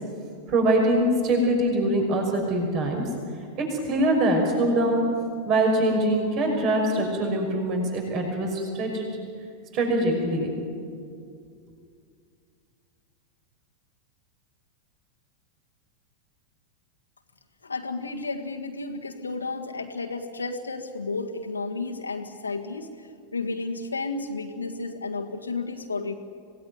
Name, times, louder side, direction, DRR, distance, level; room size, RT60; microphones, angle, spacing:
voice 1, 0.5-3.0 3.6-5.1 5.4-9.1 9.7-10.5, right 1 dB, 35° right, 2 dB, 5.7 m, -23 dB
voice 2, 17.6-26.2, left 3 dB, 80° left, 2 dB, 1.7 m, -32 dB
26.0 x 18.5 x 9.4 m, 2.3 s
figure-of-eight pair, 90°, 0 cm